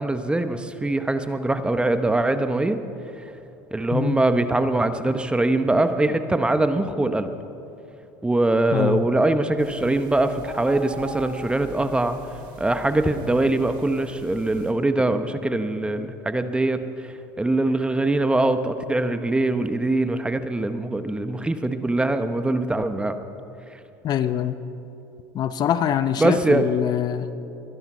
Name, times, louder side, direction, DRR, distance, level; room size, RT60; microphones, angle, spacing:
voice 1, 0.0-2.8 3.7-7.3 8.2-12.2 12.6-16.8 17.4-23.2 26.2-26.7, right 2 dB, 10° right, 10 dB, 0.9 m, -22 dB
voice 2, 3.9-4.2 8.7-9.0 24.0-24.6 25.3-27.3, left 10 dB, 45° left, 12 dB, 0.7 m, -24 dB
sound 1, 9.6-14.7, right 4 dB, 55° right, 2.7 m, -42 dB
22.5 x 10.5 x 5.5 m, 2.9 s
supercardioid pair, 95°, 10 cm